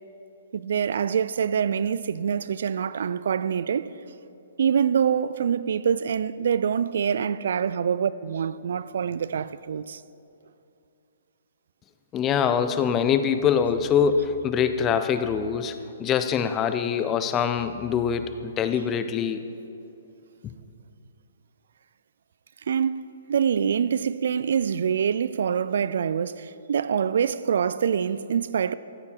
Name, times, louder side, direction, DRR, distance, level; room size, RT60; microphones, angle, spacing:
voice 1, 0.5-3.9 4.6-10.0 22.7-23.0 23.3-28.7, right 7 dB, 65° right, 0.3 m, -25 dB
voice 2, 12.1-19.4 20.4-20.5, left 7 dB, 20° left, 0.5 m, -24 dB
14.0 x 8.4 x 4.6 m
hypercardioid pair, 135°, 0 cm